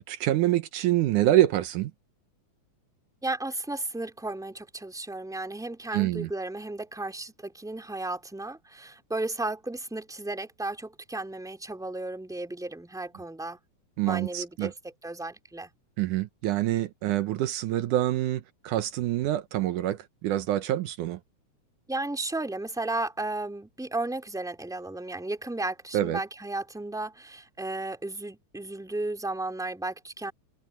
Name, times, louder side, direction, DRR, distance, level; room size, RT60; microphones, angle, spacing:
voice 1, 0.0-1.9 5.9-6.3 14.0-14.7 16.0-21.2 25.9-26.2, right 14 dB, 80° right, 2.3 m, -26 dB
voice 2, 3.2-13.6 14.1-14.7 15.0-15.7 21.9-30.3, right 2 dB, ahead, 2.9 m, -34 dB
open air
omnidirectional pair, 3.7 m